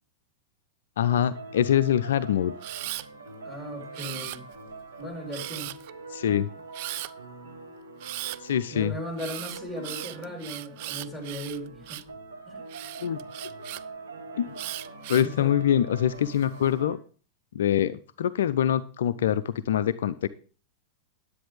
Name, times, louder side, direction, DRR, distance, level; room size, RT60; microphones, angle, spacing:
voice 1, 1.0-2.5 6.1-6.5 8.4-8.9 13.0-13.2 14.4-14.5 15.1-17.0 17.5-20.3, left 10 dB, 60° left, 14 dB, 0.4 m, -24 dB
sound 1, 1.0-17.0, right 3 dB, 70° right, 1.4 m, -44 dB
Camera, 2.6-3.1 3.9-4.7 5.3-5.9 6.7-7.1 8.0-8.4 9.2-12.1 12.7-13.8 14.6-15.3 16.0-16.5, right 17 dB, 50° right, 0.3 m, -37 dB
voice 2, 3.4-4.4 5.0-5.7 8.7-12.0 12.5-12.6 15.1-15.5, equal, 5° right, -1 dB, 4.1 m, -37 dB
10.0 x 8.3 x 3.5 m, 0.38 s
figure-of-eight pair, 90°, 0 cm